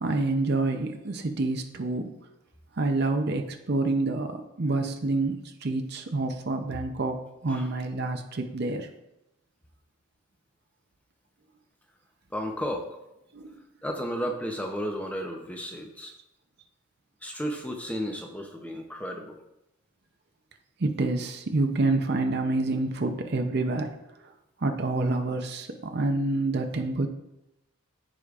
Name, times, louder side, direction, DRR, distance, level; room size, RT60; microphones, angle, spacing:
voice 1, 0.0-2.1 2.8-7.2 7.4-8.9 13.3-13.6 20.8-23.9 24.6-27.1, right 2 dB, 50° right, 5 dB, 0.6 m, -27 dB
voice 2, 12.3-12.9 13.8-16.1 17.2-19.3, equal, 5° left, 3 dB, 0.7 m, -33 dB
14.0 x 5.0 x 2.5 m, 0.87 s
head